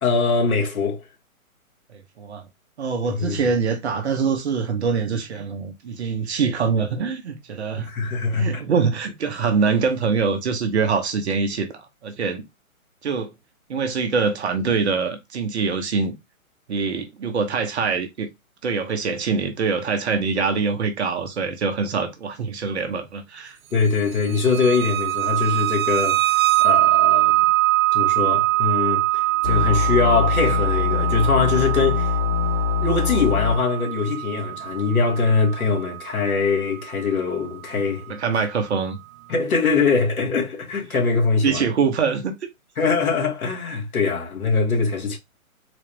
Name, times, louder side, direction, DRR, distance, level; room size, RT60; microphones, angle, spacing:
voice 1, 0.0-1.0 3.1-3.4 7.7-8.6 23.7-26.2 26.6-27.5 27.9-32.2 32.8-38.1 39.3-41.7 42.8-45.2, left 4 dB, 85° left, 1.8 m, -22 dB
voice 2, 2.8-7.9 8.3-12.4 13.0-13.3 13.7-16.1 16.7-18.3 18.6-23.6 38.1-39.0 41.4-42.3, right 5 dB, 50° right, 0.9 m, -24 dB
sound 1, 24.3-36.8, right 18 dB, 75° right, 0.6 m, -23 dB
sound 2, 29.4-33.5, left 7 dB, 20° right, 1.2 m, -23 dB
3.9 x 2.4 x 3.3 m
hypercardioid pair, 155°, 42 cm